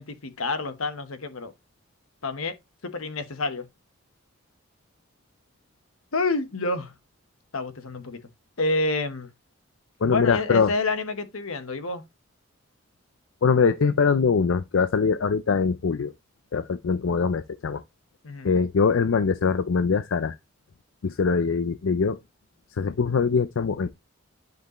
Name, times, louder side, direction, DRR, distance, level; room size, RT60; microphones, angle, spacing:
voice 1, 0.0-1.5 2.2-2.5 2.8-3.7 6.1-6.9 7.5-8.2 8.6-9.3 10.0-12.0 18.2-18.5, left 3 dB, 90° left, 1.1 m, -28 dB
voice 2, 10.0-10.7 13.4-16.1 16.5-17.8 18.4-20.4 21.0-22.2 22.8-23.9, left 5 dB, 75° left, 0.5 m, -22 dB
10.5 x 5.3 x 3.0 m
head